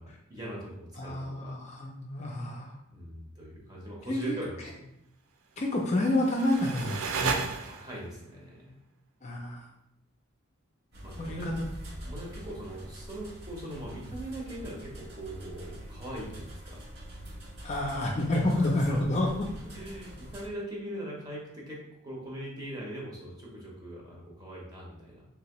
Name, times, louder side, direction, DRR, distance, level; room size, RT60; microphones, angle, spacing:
voice 1, 0.0-1.6 2.9-4.9 7.5-8.8 11.0-11.5 12.1-16.8 18.5-19.5 19.7-25.3, right 1 dB, 20° right, -4 dB, 0.8 m, -41 dB
voice 2, 1.0-2.7 4.1-4.4 5.6-7.3 9.2-9.6 11.2-11.7 17.6-19.5, left 1 dB, 30° left, -1 dB, 0.4 m, -29 dB
sound 1, 5.8-8.1, right 5 dB, 85° right, 0.4 m, -34 dB
sound 2, 10.9-20.5, equal, 50° right, 0.7 m, -44 dB
3.3 x 2.8 x 2.9 m, 0.81 s
head